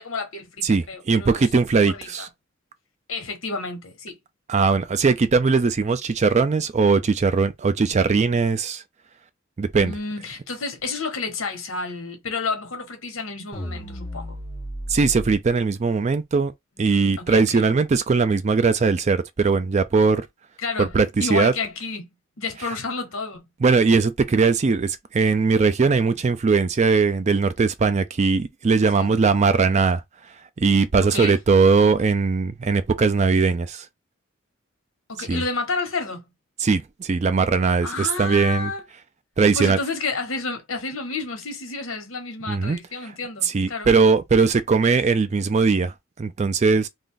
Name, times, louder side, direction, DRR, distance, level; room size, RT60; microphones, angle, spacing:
voice 1, 0.0-1.4 1.7-2.3 3.1-4.2 9.7-14.4 16.8-17.6 20.6-20.9 21.2-23.4 28.9-29.1 31.1-31.4 35.1-36.3 37.8-38.8 39.5-43.9, left 3 dB, 70° left, 1.1 m, -30 dB
voice 2, 0.6-2.3 4.5-8.8 9.6-9.9 14.9-16.5 16.8-20.3 20.8-21.5 23.6-30.0 30.6-33.9 35.3-35.4 36.6-38.7 39.4-39.8 42.5-42.8 43.4-46.9, right 4 dB, 35° right, 0.3 m, -20 dB
sound 1, 13.5-15.4, equal, 25° left, 0.7 m, -33 dB
2.5 x 2.5 x 3.7 m
head